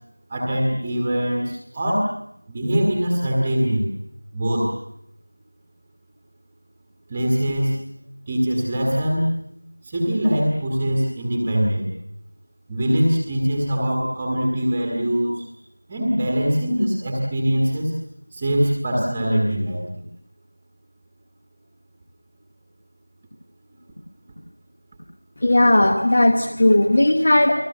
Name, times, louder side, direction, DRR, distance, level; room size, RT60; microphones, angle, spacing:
voice 1, 0.3-2.1 2.5-3.9 4.3-4.7 7.1-7.8 8.3-9.3 9.8-11.9 12.7-15.5 15.9-18.0 18.3-20.0, equal, 5° right, -2 dB, 1.5 m, -22 dB
voice 2, 25.4-27.5, left 1 dB, 20° left, 7 dB, 1.0 m, -16 dB
30.0 x 21.0 x 6.6 m, 0.74 s
figure-of-eight pair, 175°, 0 cm